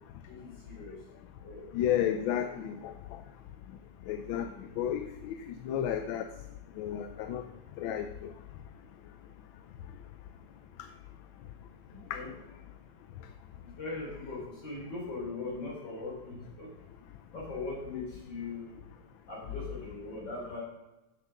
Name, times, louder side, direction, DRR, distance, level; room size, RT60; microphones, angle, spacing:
voice 1, 0.3-1.0 1.4-1.7 2.2-2.4 2.7-2.8 4.3-4.8 11.9-12.3 13.6-16.7 17.3-18.7 19.3-20.6, left 3 dB, 75° left, -4 dB, 4.4 m, -40 dB
voice 2, 1.7-2.9 4.1-4.5 4.8-5.4 5.6-6.3 6.8-7.4 7.8-8.3 12.1-12.2, left 10 dB, 90° left, 8 dB, 1.4 m, -32 dB
7.4 x 7.2 x 6.4 m, 1.0 s
omnidirectional pair, 2.1 m